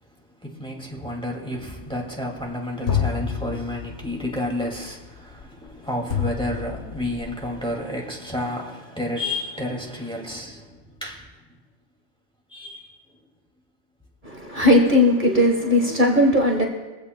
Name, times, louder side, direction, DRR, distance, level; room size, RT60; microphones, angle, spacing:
voice 1, 0.3-11.6 12.5-13.2, left 1 dB, 5° left, 2.1 m, -31 dB
sound 1, 1.5-2.5 2.9-7.7, left 7 dB, 75° left, 1.3 m, -30 dB
voice 2, 14.2-16.6, left 1 dB, 45° right, 1.4 m, -18 dB
23.0 x 15.5 x 2.2 m
omnidirectional pair, 1.2 m